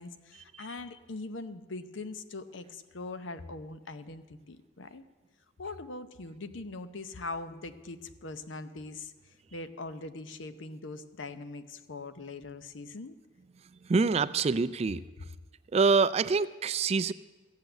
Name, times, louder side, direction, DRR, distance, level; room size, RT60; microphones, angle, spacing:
voice 1, 0.0-5.0 5.6-13.2, left 3 dB, 75° left, 11 dB, 0.8 m, -42 dB
voice 2, 13.8-15.0 15.7-17.1, right 4 dB, 30° right, 15 dB, 0.3 m, -26 dB
14.0 x 8.3 x 7.9 m, 1.2 s
head